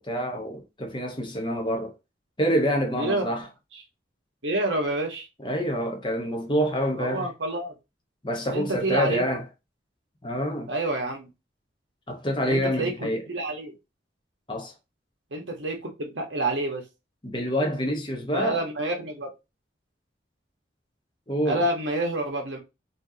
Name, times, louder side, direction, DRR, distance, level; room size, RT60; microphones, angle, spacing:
voice 1, 0.0-1.9 2.4-3.4 5.4-7.3 8.2-9.4 10.2-10.7 12.1-13.2 14.5-14.7 17.2-18.6 21.3-21.6, equal, 25° left, 1.0 m, -27 dB
voice 2, 3.0-3.4 4.4-5.3 7.0-7.7 8.5-9.4 10.7-11.3 12.5-13.7 15.3-16.9 18.3-19.3 21.4-22.6, right 2 dB, 85° right, 1.3 m, -28 dB
4.4 x 3.0 x 2.8 m
head